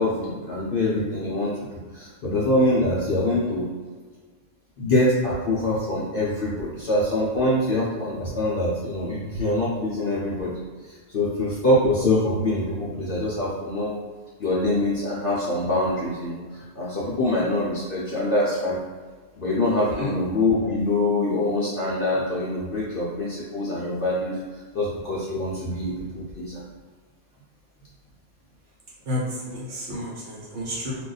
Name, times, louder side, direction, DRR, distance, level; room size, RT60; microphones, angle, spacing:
voice 1, 0.0-1.7 1.9-3.6 4.8-10.5 10.8-14.0 14.4-18.8 19.4-24.4 24.7-26.6, left 1 dB, 55° left, -7 dB, 0.6 m, -24 dB
voice 2, 29.1-31.0, left 1 dB, 60° right, -5 dB, 1.1 m, -31 dB
2.5 x 2.3 x 3.9 m, 1.5 s
omnidirectional pair, 1.4 m